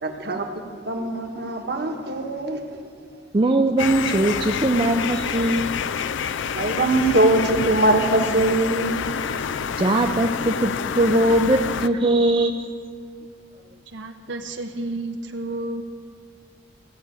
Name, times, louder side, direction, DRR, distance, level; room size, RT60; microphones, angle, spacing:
voice 1, 0.0-2.6 6.5-9.5, right 2 dB, 55° right, 3 dB, 1.3 m, -22 dB
voice 2, 3.3-5.7 9.8-12.7, right 1 dB, 25° right, 4 dB, 0.4 m, -20 dB
sound 1, 3.8-11.9, left 7 dB, 80° left, 0.4 m, -28 dB
voice 3, 13.9-15.8, right 2 dB, 75° right, 5 dB, 0.8 m, -31 dB
16.0 x 6.1 x 8.3 m, 2.1 s
head